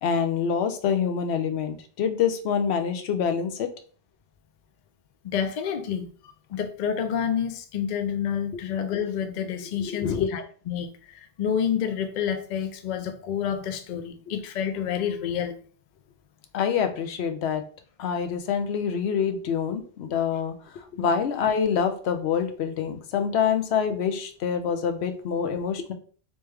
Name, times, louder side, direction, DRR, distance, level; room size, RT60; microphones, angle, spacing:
voice 1, 0.0-3.7 8.5-8.6 9.6-10.3 16.5-17.6 18.0-25.9, left 7 dB, 80° left, 0.9 m, -26 dB
voice 2, 5.2-6.1 6.5-10.9 11.4-15.6 21.0-21.1, left 8 dB, 55° left, 0.6 m, -28 dB
3.2 x 3.2 x 3.3 m
omnidirectional pair, 1.1 m